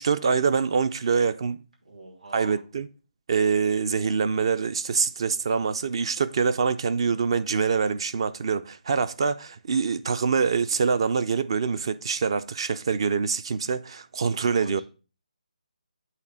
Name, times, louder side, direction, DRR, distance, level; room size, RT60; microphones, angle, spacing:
voice 1, 0.0-1.6 2.3-2.9 3.3-14.8, right 5 dB, 40° right, 0.4 m, -25 dB
voice 2, 1.8-2.6 14.5-14.8, right 2 dB, 80° right, 3.2 m, -44 dB
8.4 x 3.3 x 6.4 m
hypercardioid pair, 170°, 4 cm